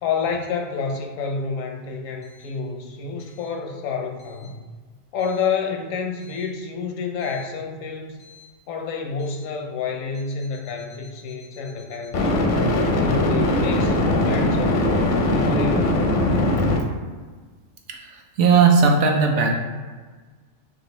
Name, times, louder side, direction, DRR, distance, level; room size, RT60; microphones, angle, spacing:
voice 1, 0.0-4.7 5.1-8.2 8.7-12.7 13.0-16.0, left 5 dB, 80° left, 3 dB, 1.0 m, -29 dB
sound 1, 7.3-7.4 12.1-16.8, left 1 dB, 55° left, 0.6 m, -20 dB
voice 2, 17.9-19.6, right 5 dB, 70° right, 1 dB, 0.9 m, -17 dB
6.1 x 2.5 x 3.1 m, 1.4 s
omnidirectional pair, 1.3 m